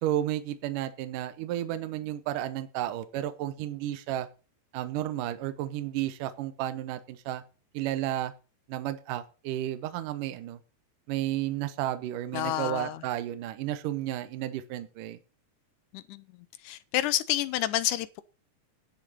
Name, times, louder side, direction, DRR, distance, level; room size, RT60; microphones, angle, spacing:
voice 1, 0.0-4.3 4.7-7.4 7.7-8.3 8.7-10.6 11.1-15.2, right 13 dB, 70° right, 2.4 m, -32 dB
voice 2, 12.3-13.0 15.9-16.2 16.6-18.2, left 13 dB, 80° left, 1.9 m, -29 dB
11.0 x 7.7 x 5.4 m
omnidirectional pair, 4.1 m